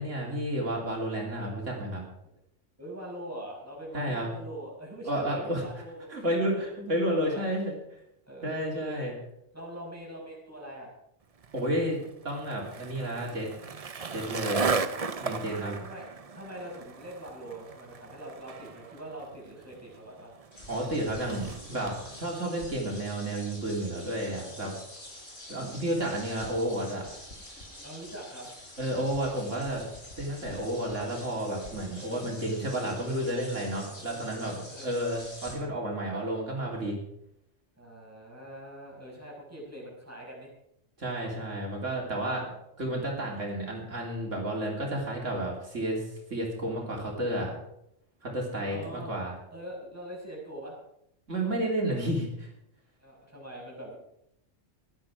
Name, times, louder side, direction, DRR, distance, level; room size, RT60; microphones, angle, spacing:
voice 1, 0.0-2.0 3.9-4.3 5.1-5.6 6.1-7.7 8.4-9.1 11.5-12.0 12.2-13.5 14.1-14.7 15.2-15.8 20.7-24.7 25.5-27.0 28.8-29.8 30.2-37.0 41.0-42.5 42.8-47.6 48.2-49.3 51.3-52.5, right 1 dB, 75° right, -2 dB, 3.5 m, -31 dB
voice 2, 2.8-6.2 6.5-6.7 7.0-7.4 8.3-9.1 9.5-10.9 15.2-16.1 16.3-20.3 25.0-25.3 27.8-28.5 33.9-35.2 36.1-36.2 37.8-40.5 42.4-42.6 48.6-49.2 49.5-50.7 53.0-54.0, right 1 dB, 10° right, -3 dB, 5.7 m, -43 dB
Skateboard, 11.4-22.0, right 4 dB, 35° right, 0.7 m, -36 dB
sound 1, 20.5-35.5, left 1 dB, 55° left, 4.5 m, -47 dB
17.0 x 12.0 x 4.9 m, 0.77 s
omnidirectional pair, 1.3 m